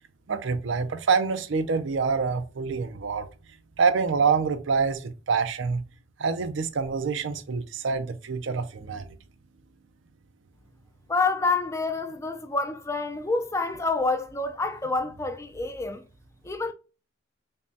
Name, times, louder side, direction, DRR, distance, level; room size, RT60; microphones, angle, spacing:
voice 1, 0.3-3.3 3.8-5.8 6.2-9.2, right 5 dB, 65° right, 0.5 m, -26 dB
voice 2, 11.1-16.0 16.4-16.7, left 3 dB, 15° left, 0.4 m, -27 dB
5.2 x 2.2 x 2.7 m
head